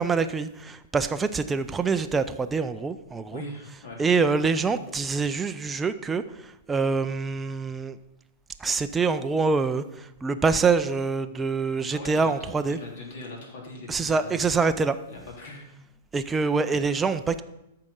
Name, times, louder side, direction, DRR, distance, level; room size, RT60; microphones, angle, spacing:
voice 1, 0.0-3.4 4.0-6.2 6.7-8.0 8.6-12.8 13.9-15.0 16.1-17.4, right 4 dB, 15° right, 9 dB, 0.5 m, -25 dB
voice 2, 3.3-4.0 11.9-14.4 15.1-15.6, left 2 dB, 55° left, 0 dB, 3.3 m, -40 dB
13.5 x 4.8 x 5.3 m, 0.87 s
figure-of-eight pair, 105°, 0 cm